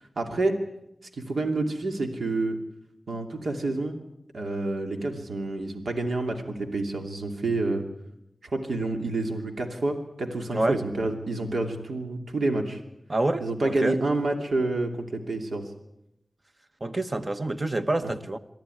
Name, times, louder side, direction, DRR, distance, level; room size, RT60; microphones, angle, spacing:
voice 1, 0.2-0.5 1.1-2.6 3.1-4.0 4.3-7.8 8.4-12.8 13.4-15.7 18.0-18.1, right 2 dB, 70° right, 2.7 m, -28 dB
voice 2, 13.1-14.0 16.8-18.4, right 2 dB, 30° right, 1.2 m, -27 dB
23.0 x 14.0 x 9.8 m
wide cardioid pair, 85°, 0 cm